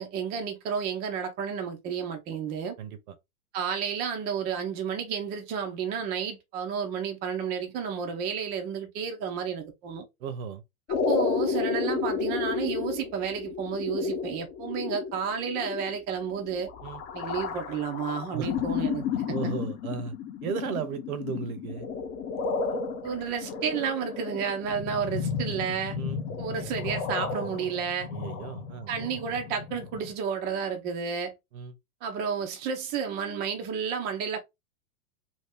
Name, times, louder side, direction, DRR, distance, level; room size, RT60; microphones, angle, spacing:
voice 1, 0.0-2.8 3.5-10.1 11.1-16.7 17.1-19.5 23.0-26.0 26.4-28.1 28.9-31.3 32.0-34.4, right 7 dB, 20° right, 0.5 m, -31 dB
voice 2, 2.8-3.1 10.2-10.6 16.8-17.0 18.3-18.5 19.3-20.1 20.4-21.9 25.9-26.2 28.1-28.9 31.5-31.7, right 7 dB, 65° right, 0.9 m, -35 dB
sound 1, 10.9-30.1, left 5 dB, 35° left, 0.8 m, -32 dB
2.8 x 2.5 x 3.5 m
hypercardioid pair, 130°, 46 cm